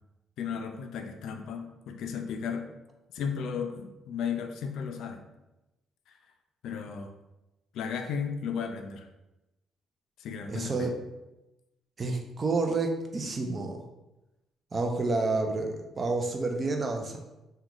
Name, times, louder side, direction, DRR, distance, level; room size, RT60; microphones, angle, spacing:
voice 1, 0.4-2.7 3.1-5.2 6.6-7.1 7.7-9.1 10.2-10.9, left 6 dB, 75° left, 5 dB, 0.4 m, -34 dB
voice 2, 10.5-10.9 12.0-13.8 14.7-17.2, right 3 dB, 35° right, 3 dB, 0.5 m, -29 dB
2.9 x 2.3 x 3.7 m, 0.97 s
cardioid pair, 90°, 0 cm